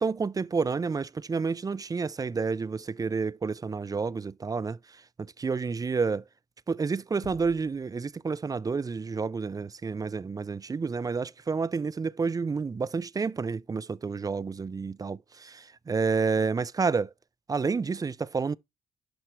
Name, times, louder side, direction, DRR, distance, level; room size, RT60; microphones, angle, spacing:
voice 1, 0.0-4.8 5.2-6.2 6.7-17.1 17.5-18.6, right 4 dB, 20° right, 0.4 m, -29 dB
Bass drum, 7.2-8.6, left 8 dB, 85° left, 1.1 m, -52 dB
11.0 x 4.4 x 3.1 m
supercardioid pair, 60°, 17 cm